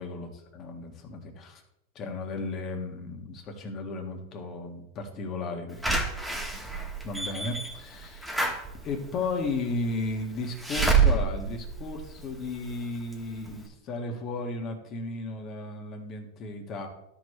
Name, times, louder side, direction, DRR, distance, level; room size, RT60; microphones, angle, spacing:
voice 1, 0.0-1.6 1.9-6.0 7.0-8.3 8.8-16.9, left 3 dB, 40° left, 3 dB, 1.8 m, -35 dB
Slam / Alarm, 5.8-12.6 13.1-13.2 13.5-13.6, right 4 dB, 5° right, 1.5 m, -28 dB
13.0 x 4.7 x 3.3 m, 0.81 s
hypercardioid pair, 115°, 0 cm